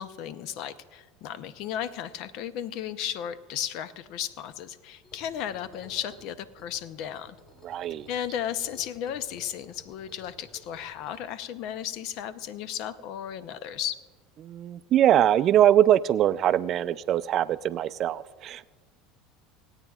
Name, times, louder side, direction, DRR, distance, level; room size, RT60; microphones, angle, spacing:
voice 1, 0.0-7.4 8.1-14.0, left 10 dB, 65° left, 15 dB, 0.6 m, -34 dB
sound 1, 5.0-11.2, left 1 dB, 40° left, 3.2 m, -54 dB
voice 2, 7.6-8.1 14.4-18.7, right 11 dB, 50° right, 16 dB, 0.3 m, -22 dB
26.5 x 9.0 x 2.4 m, 1.5 s
hypercardioid pair, 90°, 0 cm